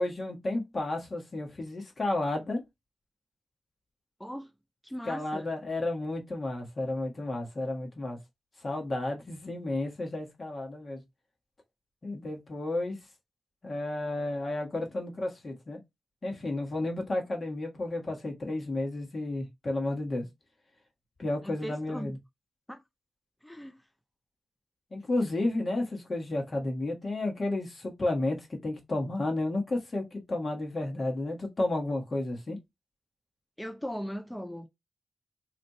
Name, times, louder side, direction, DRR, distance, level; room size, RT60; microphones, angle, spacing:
voice 1, 0.0-2.6 5.0-8.2 8.6-11.0 12.0-13.0 13.6-15.8 16.2-20.3 21.2-22.2 24.9-32.6, left 2 dB, 50° left, 1.6 m, -32 dB
voice 2, 4.2-4.5 4.8-5.5 21.4-22.1 22.7-22.8 23.4-23.8 33.6-34.7, equal, 5° left, 0.5 m, -38 dB
3.3 x 2.5 x 4.2 m
cardioid pair, 45°, 0 cm